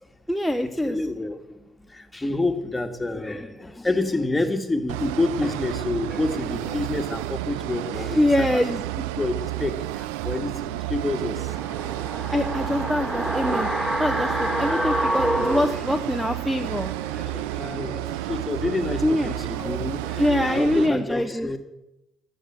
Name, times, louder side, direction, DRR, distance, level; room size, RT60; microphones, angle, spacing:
voice 1, 0.3-1.0 8.1-8.8 12.3-13.7 14.0-16.9 19.0-19.3 20.2-21.5, left 1 dB, ahead, 5 dB, 0.9 m, -24 dB
voice 2, 0.8-8.6 9.0-12.1 13.0-13.1 15.8-16.2 16.9-21.6, left 2 dB, 15° left, 6 dB, 1.8 m, -29 dB
sound 1, 4.9-20.9, right 16 dB, 85° right, 0.4 m, -31 dB
sound 2, 11.5-16.6 16.9-17.0, right 1 dB, 20° right, 3.2 m, -27 dB
12.5 x 7.5 x 7.7 m, 0.92 s
hypercardioid pair, 60°, 0 cm